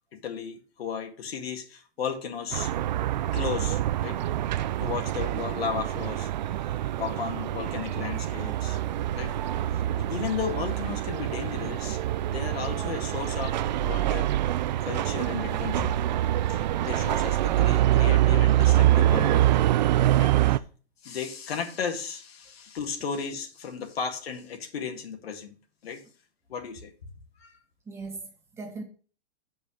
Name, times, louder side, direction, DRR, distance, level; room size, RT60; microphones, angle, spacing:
voice 1, 0.1-2.7 3.3-4.2 4.8-6.3 7.0-8.8 9.1-9.3 10.0-12.0 12.3-14.3 14.8-15.9 16.5-19.6 20.2-20.6 21.0-25.5 25.8-26.0 26.5-26.9 27.4-27.6, left 6 dB, 70° left, 2.0 m, -34 dB
sound 1, 2.5-20.6, right 13 dB, 45° right, 0.5 m, -25 dB
voice 2, 27.9-28.8, right 3 dB, 10° right, 1.9 m, -39 dB
7.8 x 5.5 x 6.3 m
hypercardioid pair, 150°, 32 cm